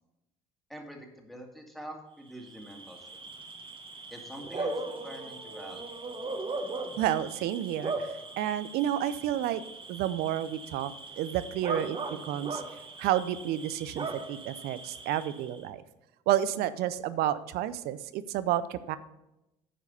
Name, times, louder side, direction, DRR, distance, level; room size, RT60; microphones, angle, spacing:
voice 1, 0.7-3.3 4.1-6.0, equal, ahead, 1 dB, 2.1 m, -45 dB
Bark / Cricket, 2.3-15.6, right 3 dB, 30° right, 1.2 m, -39 dB
voice 2, 7.0-8.1 8.4-9.6 9.9-12.0 12.2-12.6 13.0-15.8 16.3-19.0, right 12 dB, 65° right, 15 dB, 0.6 m, -30 dB
10.0 x 4.7 x 5.4 m, 0.92 s
hypercardioid pair, 65°, 18 cm